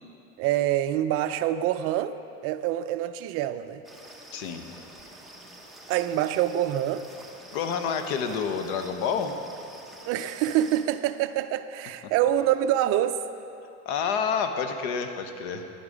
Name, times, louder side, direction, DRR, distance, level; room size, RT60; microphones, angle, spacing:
voice 1, 0.4-2.1 2.4-3.8 5.9-7.0 10.1-13.2, right 12 dB, 45° right, 11 dB, 0.4 m, -26 dB
sound 1, 3.8-10.8, right 1 dB, ahead, 0.8 m, -48 dB
voice 2, 4.3-4.6 7.5-9.4 12.0-12.1 13.8-15.7, left 6 dB, 70° left, 6 dB, 1.1 m, -29 dB
10.5 x 9.7 x 5.0 m, 2.6 s
supercardioid pair, 135°, 34 cm